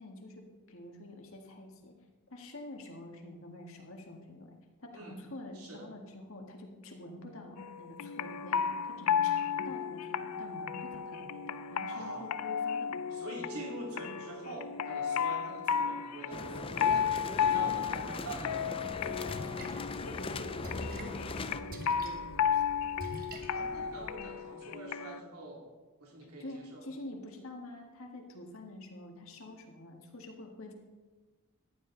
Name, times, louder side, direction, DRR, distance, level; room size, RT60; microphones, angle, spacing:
voice 1, 0.0-1.9 2.3-13.2 20.0-22.7 23.1-23.2 26.4-30.7, left 1 dB, 65° left, 2 dB, 1.8 m, -47 dB
voice 2, 5.5-5.9 11.9-12.4 13.1-19.2 23.5-25.7 26.0-26.9, right 1 dB, 80° right, -1 dB, 2.8 m, -45 dB
sound 1, 7.6-25.2, left 7 dB, 85° left, 0.5 m, -34 dB
sound 2, 16.3-21.6, left 3 dB, 25° left, 0.4 m, -40 dB
Splash splatter, 18.8-24.1, right 1 dB, 40° right, 1.3 m, -46 dB
14.5 x 10.5 x 3.9 m, 1.3 s
head